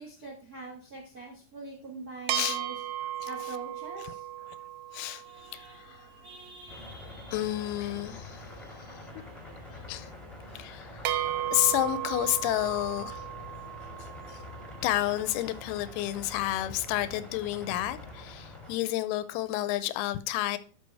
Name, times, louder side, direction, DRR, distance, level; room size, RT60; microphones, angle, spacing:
voice 1, 0.0-2.7 3.2-4.2, right 3 dB, 55° right, 1.0 m, -43 dB
sound 1, 2.3-6.0 11.1-15.4, right 12 dB, 80° right, 2.1 m, -36 dB
voice 2, 4.9-6.1 7.3-9.0 9.7-10.1 10.5-11.0 11.5-13.3 14.3-14.4 14.8-20.6, left 14 dB, 85° left, 2.5 m, -31 dB
sound 2, 5.2-18.5, right 1 dB, 40° right, 3.0 m, -54 dB
sound 3, 6.7-18.8, left 2 dB, ahead, 0.9 m, -46 dB
12.0 x 5.0 x 3.4 m
omnidirectional pair, 4.5 m